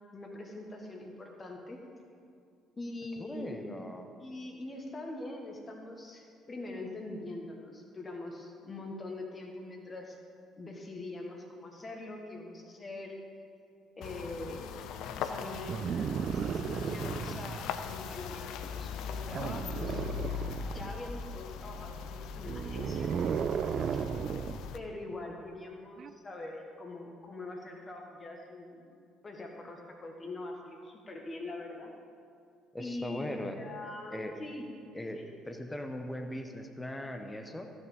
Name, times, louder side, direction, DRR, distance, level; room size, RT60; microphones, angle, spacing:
voice 1, 0.1-1.8 2.8-3.6 4.2-10.2 10.6-13.2 14.0-14.8 15.2-20.1 20.6-23.1 23.9-24.0 24.7-28.9 29.2-31.9 32.8-34.7 35.1-35.3, left 2 dB, 30° left, 1 dB, 1.7 m, -43 dB
voice 2, 3.2-4.1 32.7-33.6 34.1-34.3 34.9-35.2 35.4-37.7, left 1 dB, 15° left, 5 dB, 1.0 m, -39 dB
sound 1, 14.0-24.8, left 7 dB, 60° left, 0.5 m, -40 dB
sound 2, 15.7-17.6 19.3-21.1 22.4-24.6 26.0-26.1, right 7 dB, 45° right, 0.3 m, -34 dB
14.5 x 6.5 x 5.3 m, 2.3 s
figure-of-eight pair, 50°, 0 cm